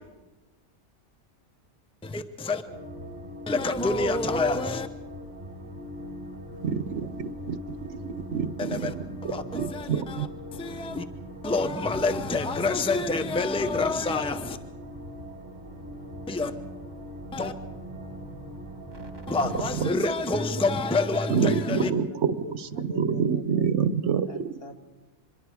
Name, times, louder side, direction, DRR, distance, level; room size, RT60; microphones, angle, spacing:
voice 1, 2.0-2.6 3.5-4.9 8.6-8.9 9.2-11.0 11.4-14.6 16.3-16.5 17.3-17.5 19.3-21.9, left 3 dB, 5° left, 0.8 m, -27 dB
sound 1, 2.7-19.9, equal, 40° right, 1.9 m, -40 dB
voice 2, 6.6-7.8 8.0-9.0 9.5-10.3 21.3-22.3 22.8-24.3, right 6 dB, 75° right, 1.2 m, -27 dB
voice 3, 20.5-21.6 22.0-23.7 24.2-24.7, left 1 dB, 55° left, 2.2 m, -41 dB
25.5 x 22.0 x 4.9 m
omnidirectional pair, 1.2 m